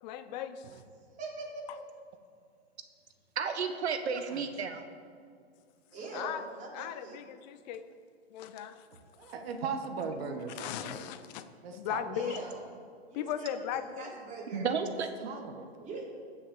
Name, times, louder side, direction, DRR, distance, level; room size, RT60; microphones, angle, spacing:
voice 1, 0.0-0.8 1.7-1.8 6.1-6.4 6.7-7.8 8.3-8.9 9.2-9.3 10.6-11.5 11.7-12.4 13.1-14.2, left 10 dB, 40° left, 11 dB, 0.7 m, -37 dB
voice 2, 1.2-1.6 5.9-7.2 12.1-12.6 13.1-14.7 15.8-16.0, right 3 dB, 25° right, -4 dB, 3.9 m, -42 dB
voice 3, 3.3-4.9 14.5-15.1, right 6 dB, 85° right, 7 dB, 1.3 m, -32 dB
voice 4, 3.9-4.4 9.2-11.1 11.6-12.4 15.2-15.9, right 5 dB, 65° right, 5 dB, 1.6 m, -39 dB
15.0 x 6.5 x 7.1 m, 2.2 s
hypercardioid pair, 130°, 32 cm